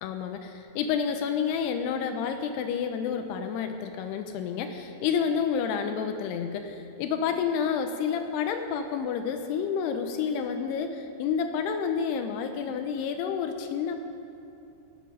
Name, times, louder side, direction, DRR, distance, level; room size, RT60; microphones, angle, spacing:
voice 1, 0.0-14.0, left 7 dB, 80° left, 7 dB, 2.6 m, -29 dB
18.5 x 7.5 x 5.5 m, 2.7 s
omnidirectional pair, 4.9 m